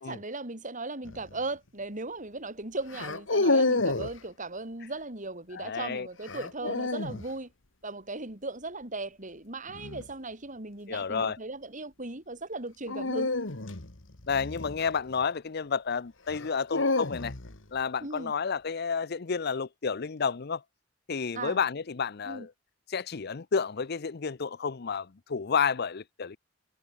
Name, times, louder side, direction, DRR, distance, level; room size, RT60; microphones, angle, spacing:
voice 1, 0.0-7.5 7.8-13.3 18.0-18.3 21.3-21.6 22.2-22.5, right 2 dB, 40° right, 6.2 m, -37 dB
sound 1, 1.0-1.4 2.9-4.2 6.3-7.2 9.7-10.1 12.9-15.2 16.3-17.6, left 2 dB, 75° left, 2.1 m, -29 dB
voice 2, 5.5-6.1 10.9-11.4 14.3-17.3 17.7-20.6 21.1-22.5 22.9-26.4, left 6 dB, 55° left, 0.7 m, -30 dB
head